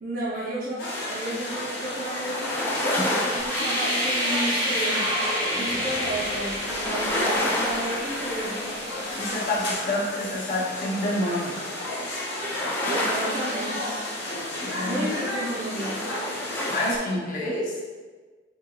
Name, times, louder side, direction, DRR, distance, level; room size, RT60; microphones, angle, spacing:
voice 1, 0.0-5.0 5.5-8.7 12.8-14.1 14.8-16.0, right 1 dB, 55° right, -6 dB, 0.9 m, -32 dB
sound 1, 0.8-17.0, left 1 dB, 75° left, 0.8 m, -33 dB
sound 2, 1.5-16.9, left 1 dB, 10° left, 0.4 m, -32 dB
sound 3, 3.4-10.3, equal, 10° right, 1.5 m, -30 dB
voice 2, 9.1-11.6 14.6-15.1 16.7-17.8, left 1 dB, 50° left, -5 dB, 0.8 m, -28 dB
3.6 x 2.8 x 2.4 m, 1.4 s
head